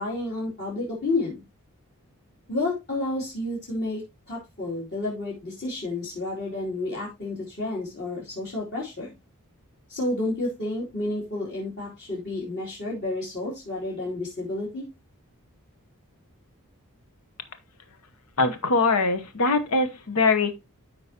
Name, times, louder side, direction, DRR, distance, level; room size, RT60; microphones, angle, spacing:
voice 1, 0.0-1.4 2.5-9.1 9.9-14.8, left 2 dB, 50° left, 3.0 m, -30 dB
voice 2, 18.4-20.5, left 3 dB, 80° left, 1.0 m, -22 dB
13.0 x 4.6 x 2.9 m
head